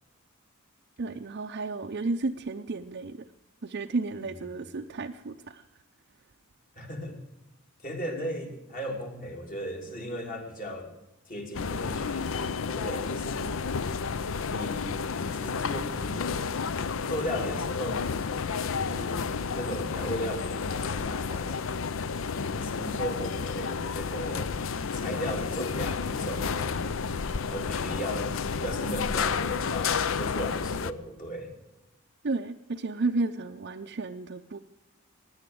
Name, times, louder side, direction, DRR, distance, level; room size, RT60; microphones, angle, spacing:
voice 1, 1.0-3.3 3.6-5.6 32.2-34.6, right 3 dB, 50° right, 4 dB, 0.5 m, -32 dB
voice 2, 6.8-7.2 7.8-10.9 11.3-13.5 14.5-16.2 17.1-18.1 18.7-21.6 22.5-24.5 24.9-26.9 27.5-31.5, equal, 40° left, 2 dB, 2.8 m, -36 dB
sound 1, 11.5-30.9, left 5 dB, 65° left, 0.6 m, -31 dB
16.5 x 10.0 x 7.8 m, 0.95 s
head